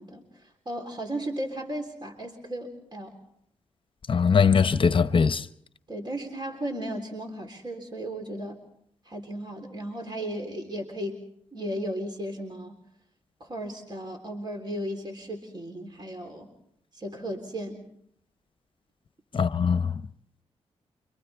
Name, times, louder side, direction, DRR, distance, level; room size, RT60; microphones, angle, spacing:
voice 1, 0.0-3.2 5.9-8.6 9.0-11.2 11.5-12.7 13.4-16.5 16.9-17.9, right 1 dB, 40° right, 3.7 m, -35 dB
voice 2, 4.1-5.5 19.3-20.0, left 6 dB, 45° left, 0.8 m, -21 dB
29.5 x 25.5 x 3.5 m
cardioid pair, 65°, 12 cm